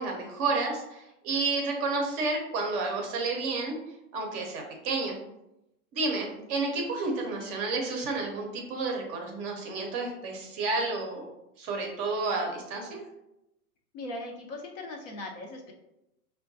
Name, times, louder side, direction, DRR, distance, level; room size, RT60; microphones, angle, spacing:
voice 1, 0.0-3.8 4.1-5.2 5.9-11.3 11.6-13.1, right 3 dB, 30° right, 1 dB, 0.7 m, -31 dB
voice 2, 13.9-15.7, left 2 dB, 35° left, 2 dB, 0.5 m, -39 dB
5.0 x 2.2 x 2.6 m, 0.87 s
hypercardioid pair, 120°, 46 cm